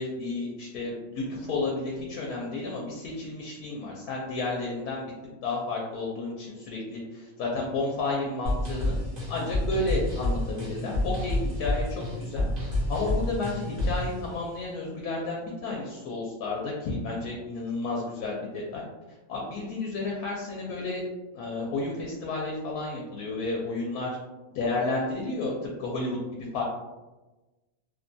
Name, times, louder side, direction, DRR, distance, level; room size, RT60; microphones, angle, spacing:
voice 1, 0.0-5.1 5.4-9.0 9.3-18.8 19.3-21.0 21.3-24.2 24.5-26.6, left 3 dB, 85° left, -2 dB, 1.1 m, -32 dB
sound 1, 8.5-14.1, left 1 dB, 45° right, 0.9 m, -29 dB
3.0 x 2.2 x 2.5 m, 1.1 s
omnidirectional pair, 1.5 m